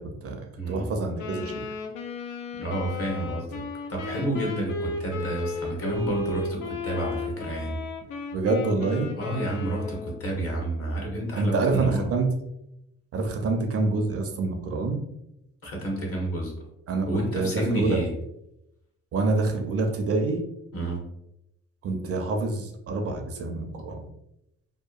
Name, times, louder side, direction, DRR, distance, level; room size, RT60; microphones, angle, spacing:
voice 1, 0.0-1.6 8.3-9.1 11.4-12.3 13.1-15.0 16.9-17.1 17.3-18.0 19.1-20.4 21.8-24.1, right 3 dB, 50° right, 4 dB, 0.5 m, -26 dB
voice 2, 0.6-0.9 2.5-3.6 3.9-7.8 9.2-12.1 15.6-16.5 17.1-18.1 20.7-21.1, right 1 dB, 50° left, 0 dB, 1.0 m, -30 dB
Wind instrument woodwind instrument, 1.2-10.2, left 3 dB, 75° left, 0.5 m, -35 dB
2.8 x 2.2 x 2.3 m, 0.84 s
cardioid pair, 90°, 30 cm